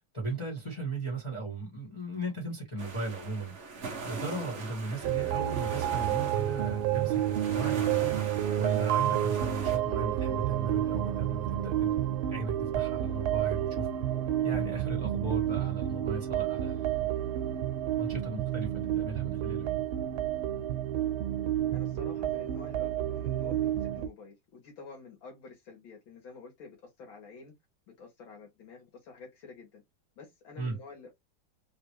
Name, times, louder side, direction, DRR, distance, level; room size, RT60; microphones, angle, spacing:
voice 1, 0.1-3.5 4.0-8.2 8.6-11.9 12.3-13.9 14.4-17.1 18.0-19.8 30.6-30.8, right 3 dB, 15° left, 1.3 m, -37 dB
sound 1, 2.8-9.8, right 4 dB, 45° right, 0.9 m, -41 dB
sound 2, 5.0-24.1, right 12 dB, 85° right, 1.5 m, -30 dB
voice 2, 21.7-27.5 27.9-29.8 30.2-31.1, left 4 dB, 70° left, 1.9 m, -49 dB
3.9 x 2.5 x 3.1 m
omnidirectional pair, 2.3 m